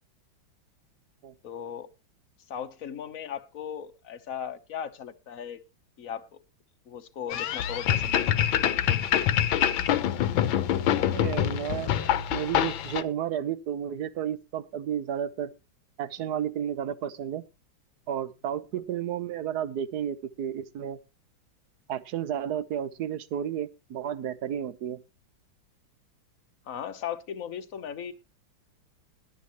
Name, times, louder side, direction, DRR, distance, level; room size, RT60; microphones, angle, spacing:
voice 1, 1.4-1.9 2.5-5.6 6.0-6.4 6.9-8.2 8.4-8.6 26.7-28.1, left 8 dB, 50° left, 1.2 m, -37 dB
sound 1, 7.3-13.0, left 10 dB, 75° left, 1.5 m, -25 dB
voice 2, 11.0-15.5 16.0-17.4 18.1-21.0 21.9-25.0, right 9 dB, 60° right, 1.2 m, -32 dB
20.5 x 8.4 x 3.0 m
omnidirectional pair, 2.2 m